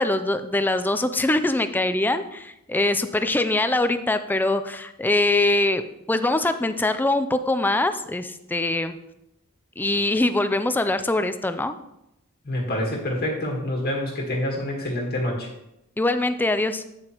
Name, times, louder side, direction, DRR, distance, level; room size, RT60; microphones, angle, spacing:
voice 1, 0.0-5.8 6.1-8.9 9.8-11.7 16.0-16.8, left 2 dB, 10° left, 10 dB, 0.4 m, -23 dB
voice 2, 12.4-15.5, left 1 dB, 45° left, -2 dB, 1.6 m, -27 dB
8.9 x 7.4 x 3.0 m, 0.85 s
head